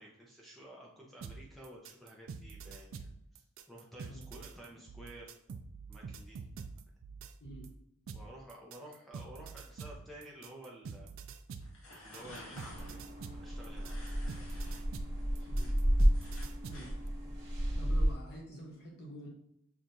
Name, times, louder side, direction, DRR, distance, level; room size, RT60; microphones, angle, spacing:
voice 1, 0.0-5.3 5.9-6.4 8.1-11.1 12.0-13.0 13.3-13.9 17.6-17.7, right 1 dB, ahead, -3 dB, 0.6 m, -52 dB
sound 1, 1.2-7.7 8.1-16.9, right 5 dB, 70° right, 0.3 m, -46 dB
voice 2, 7.4-7.7 15.5-15.8 16.6-16.9 17.7-19.3, right 1 dB, 50° left, -1 dB, 1.1 m, -48 dB
sound 2, 11.6-12.9 13.8-14.8 15.2-17.0, left 1 dB, 75° left, 1.2 m, -52 dB
sound 3, 12.7-18.1, equal, 55° right, 1.3 m, -32 dB
6.2 x 2.4 x 2.7 m, 0.74 s
head